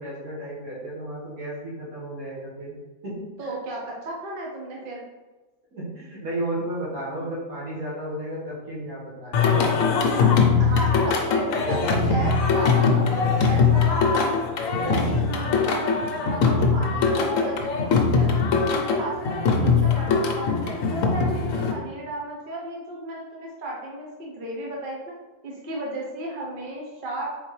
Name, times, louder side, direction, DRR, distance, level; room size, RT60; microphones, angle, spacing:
voice 1, 0.0-2.7 3.0-3.2 5.7-9.8, right 1 dB, 70° right, -8 dB, 2.0 m, -33 dB
voice 2, 3.4-5.0 7.1-7.3 10.2-14.4 14.8-15.9 16.2-18.4 18.7-25.0 25.4-27.4, right 1 dB, 45° right, -2 dB, 0.8 m, -34 dB
Singing, 9.3-21.7, left 4 dB, 65° left, 1.0 m, -21 dB
4.0 x 3.9 x 3.1 m, 1.2 s
omnidirectional pair, 1.6 m